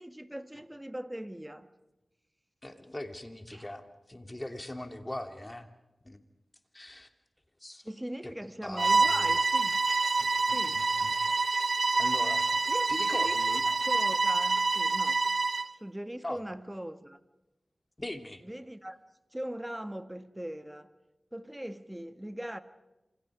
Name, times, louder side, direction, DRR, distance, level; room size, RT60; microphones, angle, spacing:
voice 1, 0.0-1.7 3.5-3.7 7.8-9.8 10.5-10.9 12.7-15.2 15.7-17.2 18.4-19.0 19.3-20.9 21.3-22.6, right 1 dB, 10° right, 1.7 m, -40 dB
voice 2, 2.6-5.7 6.0-6.2 6.7-7.1 7.6-7.9 8.2-8.3 8.6-9.4 10.2-11.1 12.0-12.6 12.9-13.6 16.2-16.4 18.0-18.4, left 1 dB, 25° left, 2.9 m, -41 dB
Bowed string instrument, 8.8-15.7, right 3 dB, 70° right, 0.8 m, -27 dB
27.5 x 27.0 x 5.0 m
cardioid pair, 50°, 0 cm